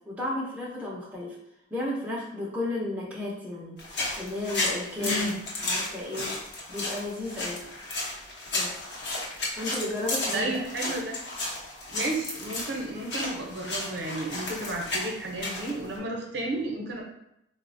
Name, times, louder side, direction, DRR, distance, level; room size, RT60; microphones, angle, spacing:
voice 1, 0.1-1.4 1.7-3.8 4.2-5.3 5.6-6.3 6.7-7.6 8.5-8.7 9.6-10.5, left 1 dB, 5° right, -5 dB, 0.5 m, -33 dB
sound 1, 3.8-16.0, left 2 dB, 60° left, 0.7 m, -33 dB
voice 2, 5.0-5.4 10.3-11.2 11.9-17.0, right 1 dB, 60° right, 0 dB, 0.6 m, -32 dB
3.8 x 2.0 x 2.5 m, 0.81 s
head